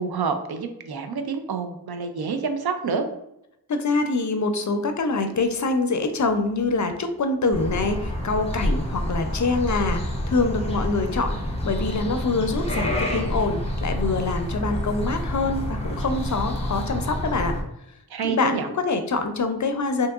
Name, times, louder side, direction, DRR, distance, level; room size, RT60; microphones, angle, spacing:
voice 1, 0.0-3.1 18.1-18.7, right 5 dB, 75° right, 7 dB, 0.5 m, -27 dB
voice 2, 3.7-17.5 18.2-20.1, left 3 dB, 50° left, 7 dB, 0.4 m, -25 dB
sound 1, 7.5-17.6, left 1 dB, 15° left, 0.7 m, -28 dB
3.5 x 2.8 x 2.3 m, 0.82 s
wide cardioid pair, 55°, 38 cm